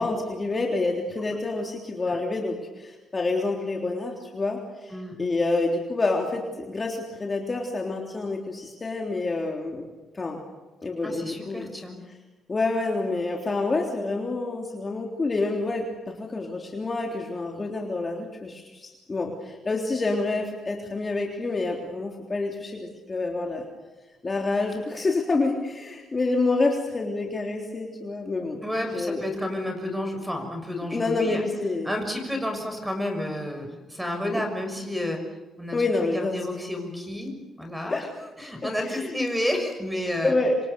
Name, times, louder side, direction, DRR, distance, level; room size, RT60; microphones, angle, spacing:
voice 1, 0.0-4.9 5.2-9.9 10.1-10.4 10.8-11.7 12.5-23.7 24.2-28.6 28.9-29.2 30.9-31.9 34.3-34.4 35.7-36.4 37.9-38.1 38.6-39.3 40.2-40.6, left 3 dB, 25° left, 1 dB, 3.3 m, -28 dB
voice 2, 4.9-5.2 11.0-12.0 28.6-31.4 31.8-35.2 35.6-35.8 36.1-38.0 38.4-40.3, left 1 dB, 5° right, 5 dB, 6.2 m, -30 dB
27.0 x 26.0 x 6.9 m, 1.2 s
cardioid pair, 115°, 0 cm